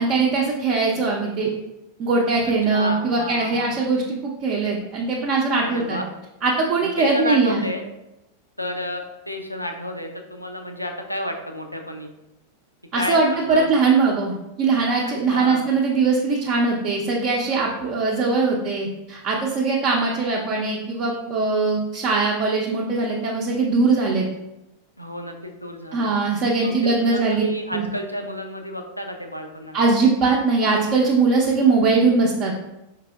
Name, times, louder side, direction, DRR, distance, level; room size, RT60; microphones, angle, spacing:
voice 1, 0.0-1.5 2.0-6.0 6.4-7.7 12.9-24.3 25.9-27.4 27.7-27.9 29.7-32.5, right 4 dB, 40° right, -3 dB, 0.5 m, -21 dB
voice 2, 2.7-3.7 5.6-6.1 6.8-7.8 8.6-12.1 12.9-13.7 15.3-15.7 25.0-26.1 26.6-29.8, left 1 dB, 90° left, 4 dB, 0.4 m, -31 dB
4.9 x 3.3 x 2.2 m, 0.92 s
figure-of-eight pair, 90°, 0 cm